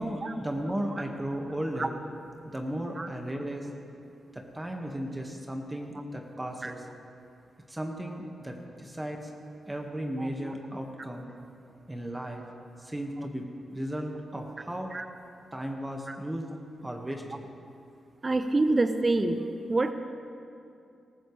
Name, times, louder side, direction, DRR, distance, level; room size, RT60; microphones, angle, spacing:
voice 1, 0.0-2.0 2.4-3.7 4.3-6.8 7.7-9.3 9.7-11.3 11.9-12.4 12.8-14.9 15.5-16.5 16.8-17.5, right 1 dB, 15° right, 2 dB, 1.7 m, -35 dB
voice 2, 18.2-19.4 19.7-19.9, right 2 dB, 35° right, 9 dB, 0.8 m, -26 dB
20.0 x 14.0 x 3.3 m, 2.6 s
supercardioid pair, 45°, 0 cm